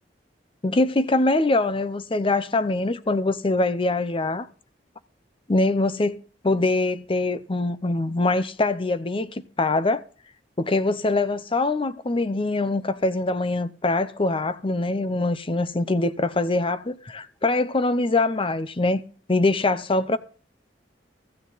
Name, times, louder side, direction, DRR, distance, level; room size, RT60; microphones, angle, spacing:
voice 1, 0.6-4.5 5.5-6.2 6.4-10.0 10.6-19.0 19.3-20.2, left 2 dB, 30° left, 0.7 m, -23 dB
14.5 x 9.8 x 4.0 m
head